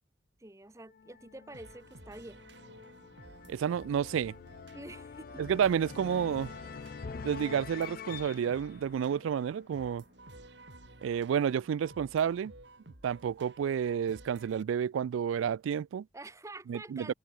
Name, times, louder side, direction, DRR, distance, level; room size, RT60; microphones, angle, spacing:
voice 1, 0.4-2.4 4.7-5.4 16.1-17.1, right 2 dB, 15° right, 0.9 m, -47 dB
sound 1, 0.9-9.9, left 5 dB, 45° left, 0.4 m, -46 dB
sound 2, 1.5-14.6, right 2 dB, 60° right, 4.1 m, -54 dB
voice 2, 3.5-4.3 5.4-6.5 7.2-10.0 11.0-12.5 13.0-16.1 16.7-17.1, right 8 dB, 85° right, 0.3 m, -30 dB
head